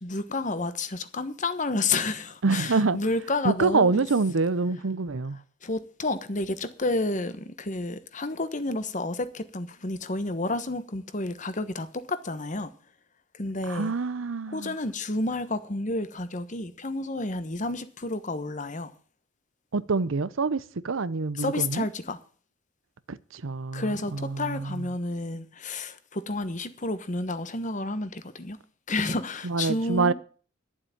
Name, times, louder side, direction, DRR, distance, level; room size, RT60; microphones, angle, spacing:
voice 1, 0.0-4.1 5.6-12.7 13.3-13.9 14.5-18.9 21.4-22.2 23.7-28.6 28.9-30.1, left 2 dB, 40° left, 1.2 m, -30 dB
voice 2, 2.4-3.0 3.4-5.4 13.7-14.8 19.7-21.9 23.1-24.9 29.4-30.1, right 4 dB, 85° right, 0.7 m, -26 dB
11.5 x 7.5 x 8.7 m
head